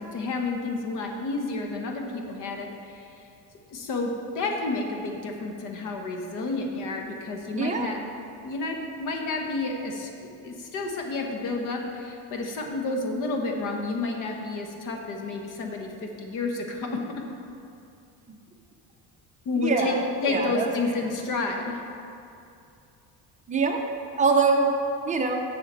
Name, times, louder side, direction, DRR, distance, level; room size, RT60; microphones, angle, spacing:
voice 1, 0.0-3.1 3.7-8.0 8.4-16.9 19.4-20.0 20.2-21.8, left 3 dB, 55° left, 2 dB, 1.2 m, -30 dB
voice 2, 7.6-7.9 19.6-20.0 20.3-20.7 23.5-23.8 24.2-24.7 25.1-25.4, right 4 dB, 20° right, 1 dB, 0.7 m, -23 dB
10.5 x 7.1 x 4.0 m, 2.6 s
cardioid pair, 160°, 37 cm